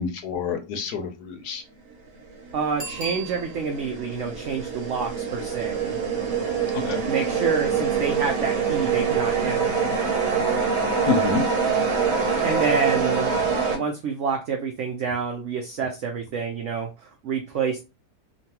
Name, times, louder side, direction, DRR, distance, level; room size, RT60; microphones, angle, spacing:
voice 1, 0.0-1.6 6.7-7.0 11.1-11.4, left 6 dB, 75° left, 6 dB, 1.1 m, -27 dB
sound 1, 2.2-13.8, right 6 dB, 60° right, 1.0 m, -25 dB
voice 2, 2.5-6.0 7.1-10.0 12.4-13.4 13.7-17.8, right 5 dB, 80° right, 3 dB, 0.6 m, -28 dB
Bicycle bell, 2.7-3.9 9.4-9.5, right 6 dB, 35° right, 1.0 m, -36 dB
3.0 x 2.2 x 2.8 m, 0.27 s
omnidirectional pair, 1.8 m